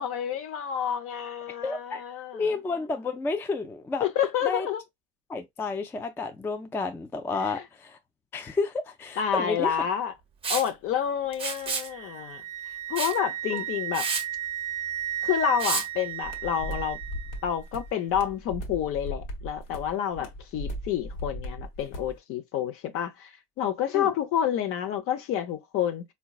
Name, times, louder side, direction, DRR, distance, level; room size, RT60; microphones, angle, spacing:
voice 1, 0.0-2.5 4.0-4.8 7.4-7.6 9.2-10.1 10.5-12.4 12.9-14.1 15.2-17.0 17.4-23.3 23.6-26.0, left 9 dB, 50° left, 0.7 m, -29 dB
voice 2, 1.6-2.0 2.3-4.1 4.4-4.7 5.3-8.0 8.3-9.8 13.5-13.6 23.9-24.1, left 4 dB, 10° left, 0.3 m, -31 dB
Liquid, 10.4-10.7 11.3-11.9 13.0-13.2 13.6-13.7 13.9-14.2 15.6-15.9, right 4 dB, 20° right, 0.9 m, -29 dB
Wind instrument woodwind instrument, 11.5-17.4, right 12 dB, 55° right, 0.6 m, -34 dB
sound 1, 16.2-22.2, equal, 65° left, 1.0 m, -37 dB
3.8 x 2.3 x 2.3 m
supercardioid pair, 100°, 29 cm